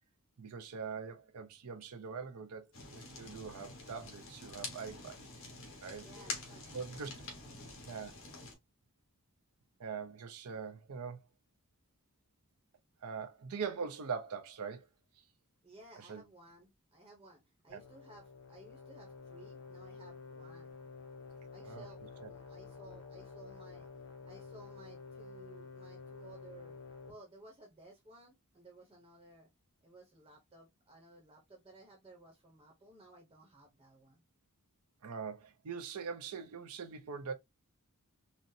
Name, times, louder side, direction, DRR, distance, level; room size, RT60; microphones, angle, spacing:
voice 1, 0.4-5.2 5.8-6.0 6.7-7.1 7.9-8.1 9.8-11.2 13.0-14.9 16.0-16.2 17.7-17.8 21.6-21.9 22.2-22.3 35.0-37.3, right 5 dB, 85° right, 0.6 m, -42 dB
Fire, 2.7-8.5, left 3 dB, 60° left, 1.1 m, -47 dB
voice 2, 5.9-7.7 15.6-20.7 21.5-23.9 24.2-26.8 27.1-29.5 29.8-34.2, right 2 dB, 20° right, 0.8 m, -57 dB
sound 1, 17.7-27.1, left 4 dB, 90° left, 0.8 m, -50 dB
3.9 x 2.0 x 2.6 m
head